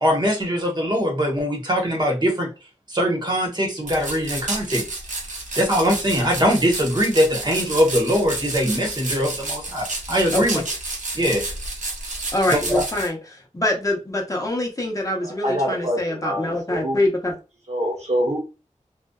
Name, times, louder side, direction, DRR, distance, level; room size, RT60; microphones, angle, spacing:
voice 1, 0.0-2.5 2.9-4.8 5.5-10.6 11.1-11.4, equal, 35° right, 1.1 m, -21 dB
sound 1, 3.9-13.1, right 2 dB, 80° right, 0.8 m, -31 dB
voice 2, 10.3-10.6 12.3-17.4, left 1 dB, 25° left, 0.8 m, -24 dB
voice 3, 15.2-17.0 17.7-18.4, equal, 60° right, 1.0 m, -25 dB
2.5 x 2.2 x 2.3 m
wide cardioid pair, 65°, 13 cm